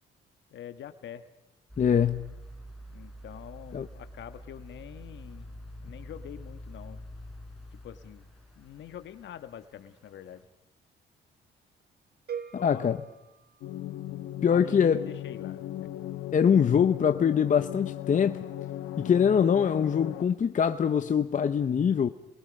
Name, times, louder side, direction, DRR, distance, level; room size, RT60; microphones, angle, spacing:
voice 1, 0.5-1.3 2.9-5.6 5.8-7.0 7.7-8.3 8.5-10.4 12.6-12.9 14.4-15.9, left 10 dB, 70° left, 1.5 m, -45 dB
sound 1, 1.7-9.9 10.4-10.5, equal, ahead, 5.5 m, -46 dB
voice 2, 1.8-2.4 3.7-3.9 12.6-13.0 14.4-15.0 16.3-18.4 19.0-22.1, left 7 dB, 40° left, 0.8 m, -23 dB
sound 2, 12.3-14.4, right 7 dB, 50° right, 1.4 m, -43 dB
sound 3, 13.6-20.2, left 13 dB, 90° left, 1.1 m, -37 dB
28.5 x 21.5 x 5.3 m
cardioid pair, 90°, 20 cm